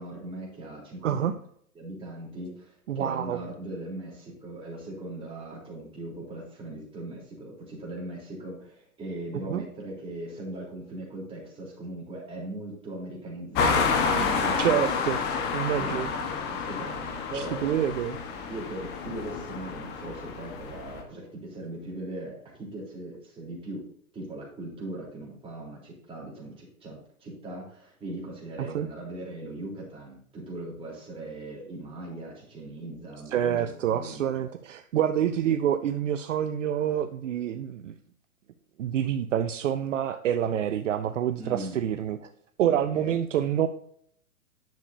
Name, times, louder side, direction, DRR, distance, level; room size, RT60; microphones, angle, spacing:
voice 1, 0.0-1.3 1.8-14.8 15.6-17.7 18.5-23.9 24.1-34.5 41.4-41.8 42.7-43.1, right 1 dB, 10° right, -4 dB, 3.6 m, -39 dB
voice 2, 1.0-1.3 2.9-3.4 9.5-9.6 14.6-15.2 15.5-16.1 17.3-18.2 28.6-28.9 33.3-37.9 38.8-42.3 42.6-43.7, right 10 dB, 60° right, 9 dB, 0.7 m, -27 dB
sound 1, 13.5-21.0, left 5 dB, 25° left, 1.3 m, -29 dB
10.5 x 7.1 x 2.7 m, 0.65 s
hypercardioid pair, 135°, 43 cm